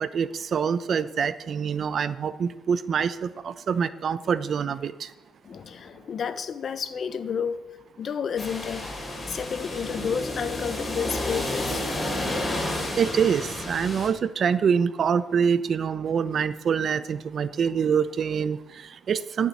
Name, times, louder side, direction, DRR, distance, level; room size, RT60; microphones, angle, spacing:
voice 1, 0.0-5.1 13.0-19.5, right 7 dB, 55° right, 0.8 m, -25 dB
voice 2, 5.4-7.7 8.0-8.9 9.3-11.9, left 7 dB, 55° left, 1.1 m, -31 dB
sound 1, 8.4-14.1, left 1 dB, 25° left, 5.0 m, -31 dB
15.5 x 7.5 x 9.7 m
cardioid pair, 90°, 0 cm